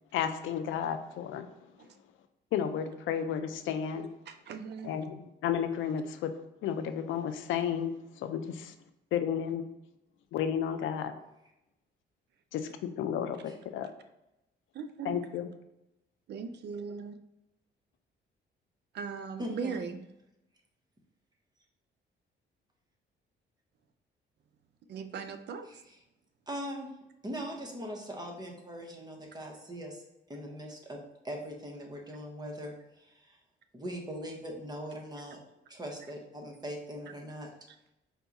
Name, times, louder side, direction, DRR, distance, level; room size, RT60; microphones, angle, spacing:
voice 1, 0.1-1.5 2.5-4.1 4.8-7.9 8.2-8.7 9.1-9.7 10.3-11.1 12.5-13.9 15.0-15.5, left 8 dB, 80° left, 9 dB, 0.4 m, -32 dB
voice 2, 4.3-4.9 14.7-15.2 16.3-17.2 18.9-20.0 24.9-25.8, right 5 dB, 60° right, 9 dB, 0.5 m, -39 dB
voice 3, 19.4-19.8 26.5-26.9 27.2-30.0 30.3-31.0 31.2-33.4 33.7-35.4 35.7-37.5, equal, 20° right, 1 dB, 1.0 m, -40 dB
4.4 x 2.3 x 4.0 m, 0.89 s
cardioid pair, 90°, 20 cm